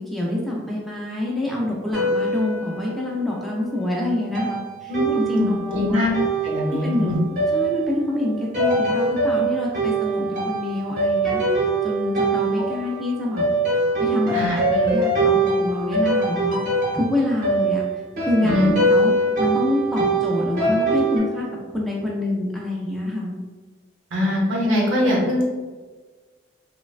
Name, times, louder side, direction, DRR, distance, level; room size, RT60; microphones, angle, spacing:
voice 1, 0.1-6.1 6.7-7.1 7.5-11.4 11.8-16.6 16.9-17.8 18.2-18.6 18.9-19.1 19.4-21.5 21.7-23.4, left 1 dB, ahead, -4 dB, 0.3 m, -26 dB
sound 1, 1.9-3.4 4.3-21.2, right 2 dB, 45° right, 0.8 m, -23 dB
voice 2, 4.9-6.1 6.4-7.2 12.6-12.7 14.3-14.6 18.4-18.7 24.1-25.4, left 1 dB, 90° right, -2 dB, 0.7 m, -22 dB
3.1 x 2.1 x 2.4 m, 1.4 s
head